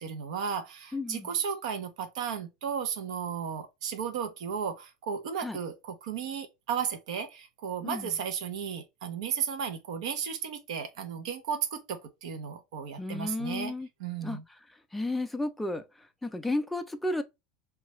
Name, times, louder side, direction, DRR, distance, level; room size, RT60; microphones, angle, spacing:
voice 1, 0.0-13.7 14.0-14.4, right 7 dB, 80° right, 0.7 m, -34 dB
voice 2, 0.9-1.3 5.4-5.6 7.8-8.1 13.0-13.9 14.2-14.4 14.9-15.8 16.2-17.2, left 2 dB, 5° left, 0.3 m, -32 dB
3.1 x 2.3 x 3.0 m
supercardioid pair, 155°, 3 cm